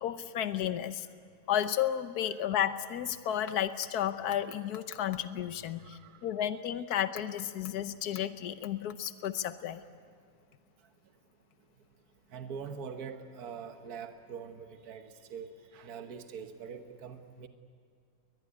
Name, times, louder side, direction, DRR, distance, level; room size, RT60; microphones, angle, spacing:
voice 1, 0.0-1.1 1.5-9.8, left 10 dB, 80° left, 11 dB, 1.4 m, -32 dB
voice 2, 5.8-6.3 12.3-17.5, right 6 dB, 75° right, 6 dB, 1.7 m, -44 dB
22.0 x 21.0 x 9.6 m, 2.3 s
omnidirectional pair, 1.6 m